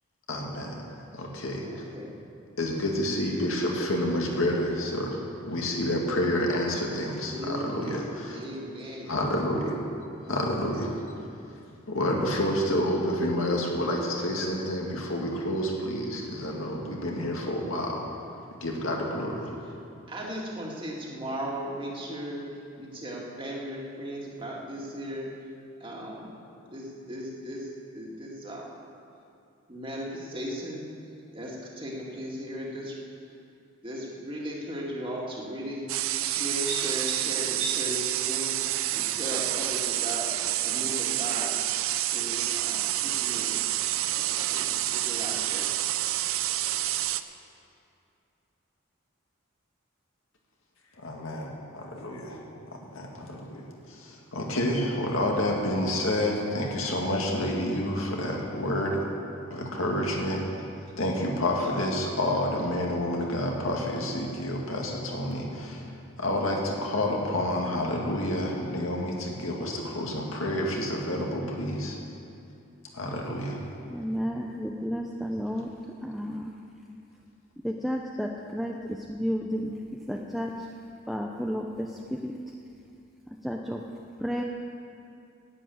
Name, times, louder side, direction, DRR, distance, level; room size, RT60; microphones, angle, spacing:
voice 1, 0.3-1.8 2.6-8.4 9.1-9.7 10.3-10.9 11.9-18.1 18.6-19.5 51.0-52.4 52.7-53.6 53.9-59.0 59.5-60.4 61.0-65.9 66.2-72.0 72.9-73.6, left 1 dB, 75° left, -1 dB, 2.0 m, -29 dB
voice 2, 1.6-2.2 7.3-9.1 20.1-22.4 22.8-25.3 25.8-26.3 26.7-28.7 29.7-30.9 31.3-33.0 33.8-35.8 36.2-38.6 38.9-40.3 40.6-41.6 42.1-43.5 44.0-45.7, equal, 25° right, -3 dB, 2.0 m, -37 dB
sound 1, 35.9-47.2, right 14 dB, 75° right, 0.5 m, -28 dB
voice 3, 73.9-75.7 76.0-76.5 77.6-79.8 80.1-80.5 81.1-82.3 83.4-83.8 84.2-84.4, equal, ahead, 0 dB, 0.5 m, -32 dB
11.0 x 8.5 x 9.3 m, 2.6 s
head